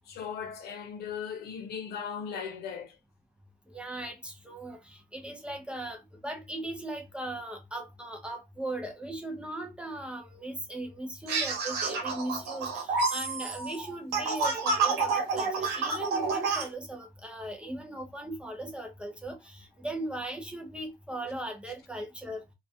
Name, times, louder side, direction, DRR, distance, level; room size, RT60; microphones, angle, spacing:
voice 1, 0.1-3.0, left 7 dB, 75° left, 0.8 m, -38 dB
voice 2, 3.7-22.4, right 1 dB, 5° right, 0.5 m, -38 dB
sound 1, 11.3-16.7, right 4 dB, 75° right, 1.0 m, -29 dB
2.3 x 2.2 x 2.6 m
cardioid pair, 110°, 17 cm